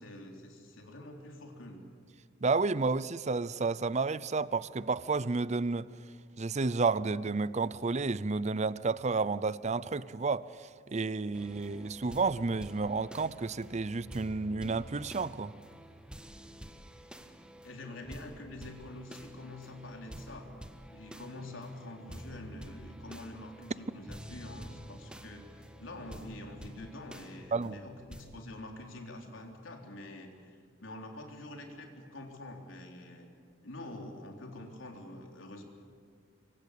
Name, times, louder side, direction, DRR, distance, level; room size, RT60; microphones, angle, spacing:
voice 1, 0.0-1.8 17.6-20.5 20.9-33.3 33.6-35.6, left 1 dB, 85° left, 3.9 m, -46 dB
voice 2, 2.4-5.9 6.4-15.5 27.5-27.8, right 4 dB, 35° right, 0.6 m, -31 dB
sound 1, 11.3-28.4, equal, 5° right, 1.4 m, -49 dB
25.5 x 24.0 x 8.4 m
head